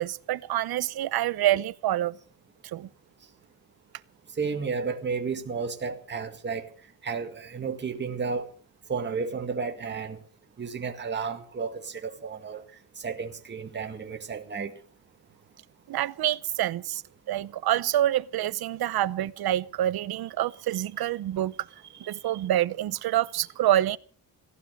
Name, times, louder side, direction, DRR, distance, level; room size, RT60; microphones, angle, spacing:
voice 1, 0.0-2.2 2.6-2.9 15.9-17.0 17.3-21.7 22.1-24.0, right 13 dB, 85° right, 0.8 m, -27 dB
voice 2, 4.4-6.7 7.0-8.5 8.9-10.2 10.6-12.6 13.0-14.7 22.1-22.2, right 5 dB, 30° right, 2.0 m, -32 dB
18.0 x 15.0 x 5.3 m
wide cardioid pair, 180°, 36 cm